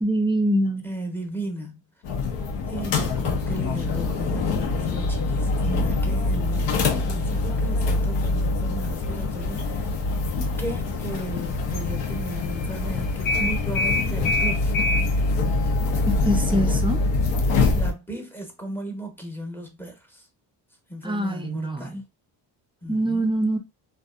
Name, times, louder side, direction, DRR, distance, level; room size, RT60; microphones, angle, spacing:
voice 1, 0.0-0.9 16.3-17.0 21.0-22.0 22.9-23.6, right 1 dB, 10° right, 0.4 m, -24 dB
voice 2, 0.8-1.8 2.7-9.9 10.6-14.7 15.5-16.7 17.4-20.3 20.9-22.0 22.8-23.3, right 1 dB, 5° left, 0.8 m, -36 dB
sound 1, 2.0-17.9, left 3 dB, 70° left, 0.7 m, -24 dB
2.5 x 2.3 x 2.4 m
cardioid pair, 85°, 46 cm